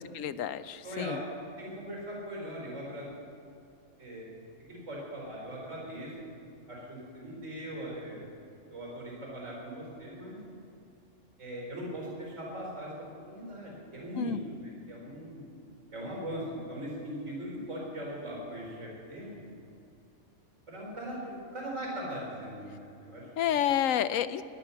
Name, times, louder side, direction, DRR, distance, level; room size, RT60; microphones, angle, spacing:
voice 1, 0.1-1.2 14.2-14.4 23.4-24.4, left 10 dB, 90° left, 13 dB, 1.0 m, -29 dB
voice 2, 0.8-1.2 1.6-3.0 4.0-4.3 4.7-6.1 6.7-8.3 8.7-10.4 11.4-12.9 13.3-14.3 14.6-15.4 15.9-19.5 20.7-23.2, equal, 70° right, -3 dB, 4.8 m, -40 dB
17.5 x 11.0 x 5.7 m, 2.7 s
omnidirectional pair, 1.3 m